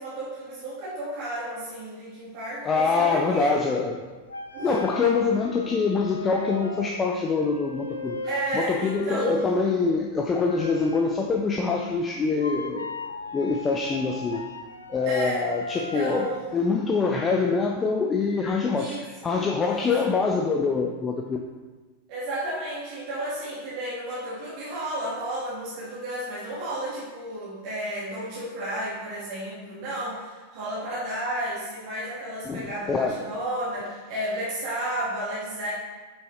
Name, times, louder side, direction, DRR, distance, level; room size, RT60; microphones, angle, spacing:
voice 1, 0.0-3.5 4.5-4.8 8.2-9.5 15.0-15.4 15.7-16.7 18.8-19.4 19.7-19.9 22.1-35.7, right 1 dB, 45° right, -8 dB, 1.6 m, -32 dB
voice 2, 2.6-4.0 4.6-8.2 8.5-12.9 13.3-14.4 14.9-21.4 32.5-33.2, left 4 dB, 20° left, 2 dB, 0.5 m, -25 dB
sound 1, 4.0-16.4, left 2 dB, 75° left, 0.5 m, -38 dB
6.4 x 5.5 x 3.2 m, 1.3 s
figure-of-eight pair, 90°, 0 cm